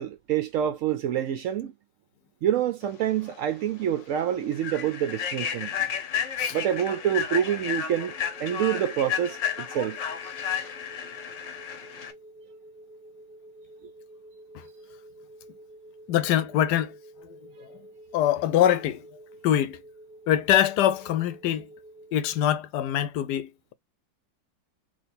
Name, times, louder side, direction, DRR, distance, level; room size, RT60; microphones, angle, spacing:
voice 1, 0.0-1.7 2.4-5.7 6.5-8.1 8.4-10.0, right 10 dB, 75° right, 0.7 m, -27 dB
Human voice / Train, 3.2-3.4 3.8-4.0 4.5-12.1, left 8 dB, 55° left, 0.9 m, -32 dB
sound 1, 7.9-22.5, right 1 dB, 5° right, 0.9 m, -49 dB
voice 2, 16.1-16.9 18.1-19.0 19.4-19.8 20.3-21.7 22.1-23.7, left 11 dB, 75° left, 1.1 m, -23 dB
3.2 x 3.1 x 4.1 m
omnidirectional pair, 1.9 m